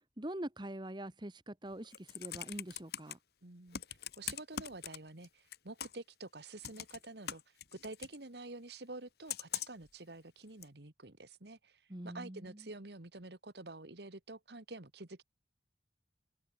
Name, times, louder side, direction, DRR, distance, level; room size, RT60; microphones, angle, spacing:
voice 1, 0.2-3.2 11.9-12.6, right 1 dB, 25° right, 1.4 m, -44 dB
Computer keyboard, 1.7-3.1 3.7-5.3 5.5-6.1 6.6-8.2 9.3-9.9 10.6-10.7, left 9 dB, 60° left, 1.5 m, -42 dB
voice 2, 3.4-15.2, right 2 dB, 65° right, 1.8 m, -49 dB
head